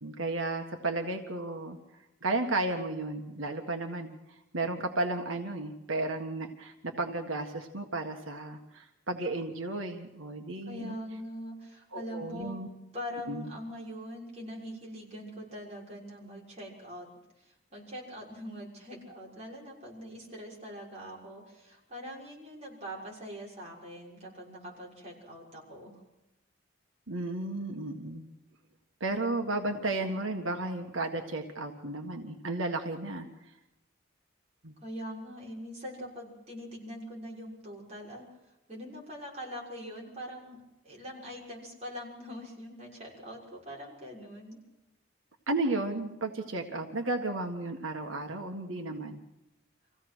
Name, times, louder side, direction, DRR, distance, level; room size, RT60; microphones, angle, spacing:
voice 1, 0.0-1.8 2.2-11.0 11.9-12.7 13.3-13.5 27.1-28.3 29.0-33.3 34.6-34.7 45.5-49.2, right 2 dB, 85° right, 4 dB, 1.7 m, -33 dB
voice 2, 10.7-12.6 12.9-17.1 17.4-26.0 34.8-38.3 38.7-40.6 40.8-44.6, equal, 30° right, -3 dB, 6.6 m, -43 dB
26.0 x 16.0 x 6.3 m, 0.93 s
head